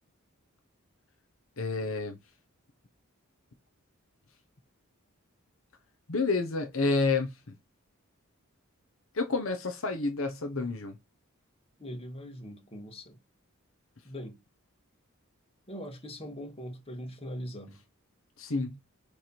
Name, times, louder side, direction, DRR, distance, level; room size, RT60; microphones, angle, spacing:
voice 1, 1.6-2.2 6.1-7.3 9.1-10.9 18.4-18.8, left 3 dB, 70° left, 1.1 m, -29 dB
voice 2, 11.8-13.2 14.0-14.4 15.7-17.8, equal, 30° left, 1.9 m, -41 dB
9.2 x 3.6 x 4.5 m
head